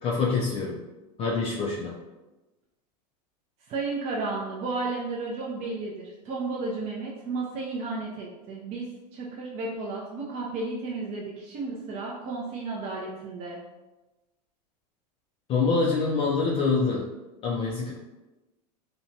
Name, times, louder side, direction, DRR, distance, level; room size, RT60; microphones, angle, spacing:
voice 1, 0.0-0.8 1.2-2.0 15.5-17.1 17.4-17.9, left 4 dB, 25° left, -3 dB, 0.3 m, -25 dB
voice 2, 3.7-13.6, right 3 dB, 35° right, -3 dB, 0.5 m, -33 dB
2.7 x 2.2 x 2.6 m, 1.1 s
hypercardioid pair, 115°, 21 cm